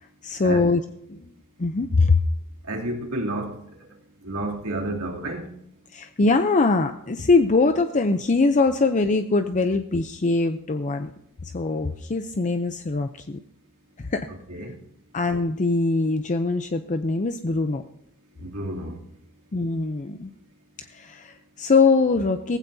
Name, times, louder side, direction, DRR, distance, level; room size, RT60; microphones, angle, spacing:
voice 1, 0.2-0.8 1.1-1.3 1.6-2.2 5.9-11.1 11.4-13.4 14.0-14.3 15.1-17.8 19.5-20.3 20.8-22.6, left 3 dB, 35° left, 8 dB, 0.6 m, -22 dB
voice 2, 2.6-5.5 14.3-14.7 18.4-19.0, right 1 dB, 85° right, 0 dB, 2.8 m, -31 dB
18.0 x 15.5 x 2.7 m, 0.79 s
head